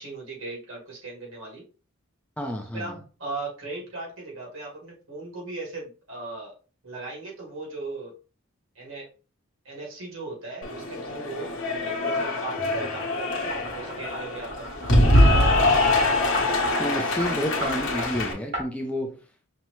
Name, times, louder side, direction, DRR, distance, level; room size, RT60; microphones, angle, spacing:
voice 1, 0.0-1.6 2.7-6.5 6.8-8.2 8.8-9.1 9.7-11.5 11.8-15.9, right 3 dB, 70° right, 1.8 m, -38 dB
voice 2, 2.4-2.9 16.8-19.2, equal, 5° left, 0.4 m, -30 dB
Cheering / Applause, 10.6-18.3, left 1 dB, 65° left, 0.9 m, -23 dB
sound 1, 13.5-15.3 16.3-16.8 17.2-17.3 17.6-18.1 18.5-18.6, equal, 50° right, 2.0 m, -34 dB
5.5 x 2.1 x 3.0 m
head